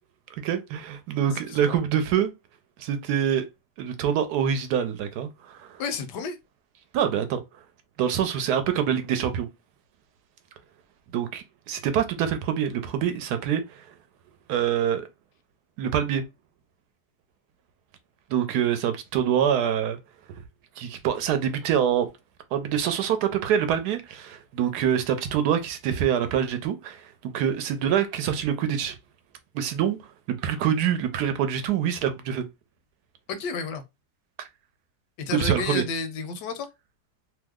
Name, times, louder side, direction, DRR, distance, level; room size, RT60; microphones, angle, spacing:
voice 1, 0.4-2.3 2.8-3.4 3.8-5.8 6.9-7.4 8.0-9.5 11.1-13.8 14.5-15.1 15.8-16.2 18.3-20.0 20.8-22.1 22.5-29.0 29.5-30.0 30.3-32.4 35.3-35.8, right 9 dB, 75° right, 1.1 m, -25 dB
voice 2, 1.5-1.8 5.8-6.4 33.3-33.8 35.2-36.7, left 5 dB, 85° left, 1.3 m, -31 dB
3.1 x 2.0 x 3.5 m
omnidirectional pair, 1.8 m